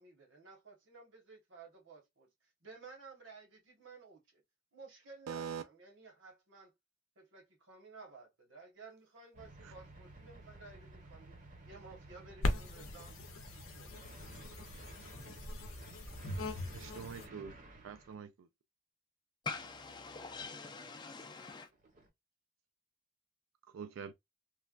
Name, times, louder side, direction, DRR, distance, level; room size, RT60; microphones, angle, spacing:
voice 1, 0.0-2.3 2.6-4.4 4.7-6.7 7.2-11.3 11.6-13.2 13.5-13.9, right 4 dB, 70° right, 1.2 m, -55 dB
voice 2, 5.3-5.6 9.6-9.7 16.7-17.5 17.8-18.5 23.7-24.1, right 7 dB, 85° right, 0.3 m, -44 dB
sound 1, 9.3-18.1 19.5-20.5 21.7-22.1, right 2 dB, 40° right, 0.8 m, -53 dB
sound 2, 12.4-17.3, left 1 dB, 90° left, 0.6 m, -40 dB
voice 3, 19.4-21.7, left 4 dB, 20° left, 0.4 m, -44 dB
3.2 x 2.2 x 2.4 m
head